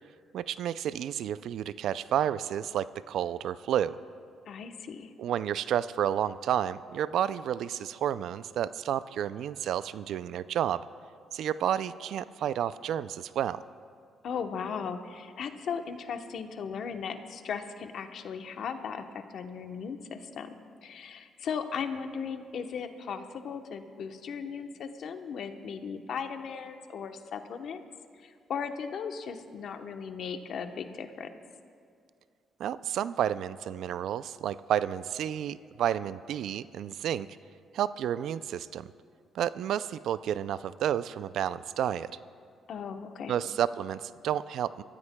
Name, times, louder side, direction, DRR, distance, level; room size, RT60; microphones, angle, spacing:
voice 1, 0.3-4.0 5.2-10.8 11.3-13.6 32.6-37.3 37.7-38.9 39.3-42.2 43.3-44.8, right 10 dB, 75° right, 16 dB, 0.3 m, -31 dB
voice 2, 4.5-5.1 14.2-20.5 20.8-27.8 28.2-31.3 42.7-43.3, left 6 dB, 65° left, 7 dB, 0.9 m, -37 dB
24.0 x 14.0 x 2.2 m, 2.3 s
cardioid pair, 90°, 0 cm